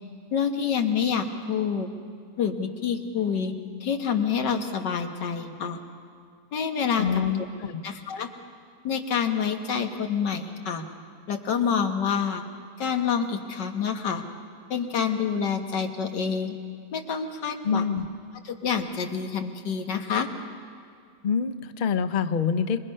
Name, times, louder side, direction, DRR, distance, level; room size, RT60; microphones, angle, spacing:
voice 1, 0.3-1.9 2.4-3.5 3.8-5.8 6.5-7.1 7.8-8.3 8.8-10.8 11.3-12.4 12.8-14.2 14.7-16.5 16.9-18.1 18.4-20.3, left 7 dB, 75° left, 5 dB, 2.0 m, -27 dB
voice 2, 7.0-7.9 17.6-18.1 21.2-22.8, left 6 dB, 55° left, 10 dB, 0.5 m, -26 dB
26.0 x 22.0 x 5.5 m, 2.2 s
omnidirectional pair, 1.9 m